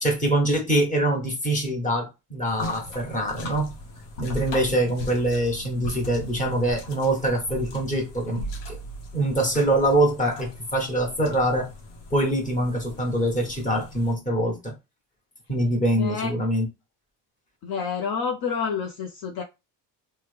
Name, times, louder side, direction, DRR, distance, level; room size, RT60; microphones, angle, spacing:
voice 1, 0.0-3.7 4.2-8.8 9.1-11.7 12.1-14.7 15.5-16.7, right 1 dB, 15° left, 1.3 m, -24 dB
sound 1, 2.5-14.1, left 1 dB, 75° left, 1.0 m, -38 dB
voice 2, 16.0-16.3 17.6-19.4, left 6 dB, 55° left, 0.6 m, -28 dB
3.1 x 2.2 x 3.2 m
supercardioid pair, 100°, 45 cm